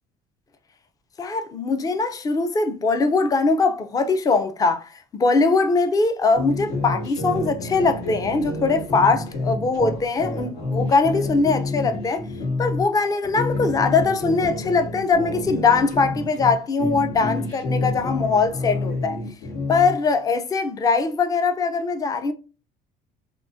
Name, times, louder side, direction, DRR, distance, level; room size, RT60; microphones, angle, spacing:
voice 1, 1.2-12.2 12.6-19.2 19.7-22.3, left 4 dB, 20° left, 0.4 m, -21 dB
sound 1, 6.3-12.8 13.2-16.5 16.8-19.9, left 2 dB, 85° left, 1.7 m, -28 dB
3.6 x 2.7 x 2.5 m
cardioid pair, 110°, 16 cm